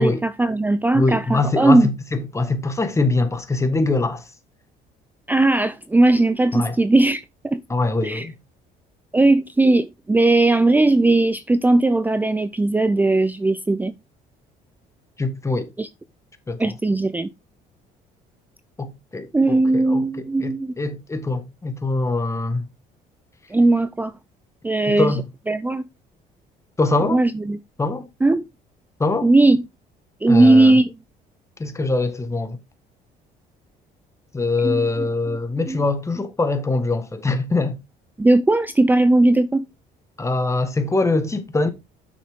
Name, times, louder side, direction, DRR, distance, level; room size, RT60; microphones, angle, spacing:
voice 1, 0.0-1.9 5.3-7.6 8.0-8.3 9.1-13.9 15.8-15.9 16.6-17.3 19.3-20.7 23.5-24.1 24.6-25.1 25.5-25.8 27.1-27.6 28.2-28.4 29.2-29.6 30.2-30.9 34.6-35.1 35.7-35.8 38.2-39.7, right 2 dB, 10° right, 0.5 m, -18 dB
voice 2, 0.9-4.2 6.5-6.8 7.7-8.3 15.2-15.7 16.5-16.7 18.8-22.7 24.9-25.3 26.8-27.2 27.8-28.1 29.0-29.3 30.3-30.8 31.6-32.6 34.3-37.8 40.2-41.7, left 3 dB, 15° left, 1.5 m, -23 dB
8.5 x 6.3 x 3.6 m
cardioid pair, 110°, 17 cm